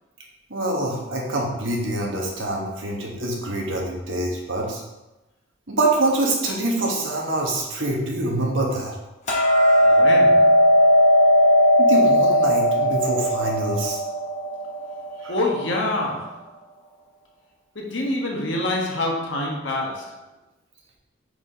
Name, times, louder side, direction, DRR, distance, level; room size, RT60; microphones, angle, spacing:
voice 1, 0.5-4.8 5.7-8.9 11.8-14.0 15.2-15.3, right 2 dB, 75° right, -1 dB, 1.4 m, -25 dB
Hammer, 9.3-15.5, equal, 35° left, 1.3 m, -17 dB
voice 2, 9.8-10.7 15.3-16.4 17.7-20.2, left 1 dB, 65° left, -1 dB, 1.3 m, -26 dB
5.0 x 4.2 x 4.9 m, 1.0 s
head